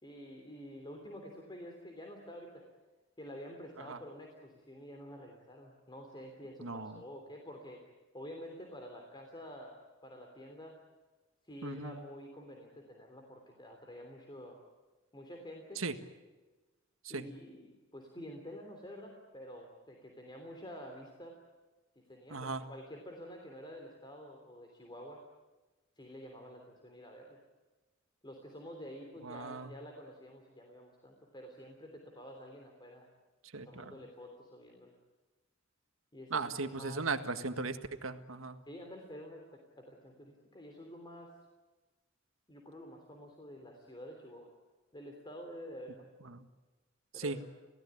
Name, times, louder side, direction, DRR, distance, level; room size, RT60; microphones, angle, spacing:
voice 1, 0.0-2.6 3.2-7.8 8.1-9.8 10.0-10.8 11.4-14.6 15.1-15.8 17.1-21.4 22.1-25.2 26.0-27.4 28.2-33.1 33.6-34.9 36.1-37.1 38.7-41.3 42.5-44.5 44.9-46.1 47.1-47.4, equal, 25° left, 2 dB, 3.3 m, -49 dB
voice 2, 6.6-7.0 11.6-12.0 15.7-15.9 17.0-17.2 22.3-22.6 29.2-29.7 33.5-34.0 36.3-38.6 46.2-46.4 47.1-47.4, right 3 dB, 90° right, 8 dB, 1.7 m, -37 dB
28.5 x 17.5 x 9.9 m, 1.2 s
head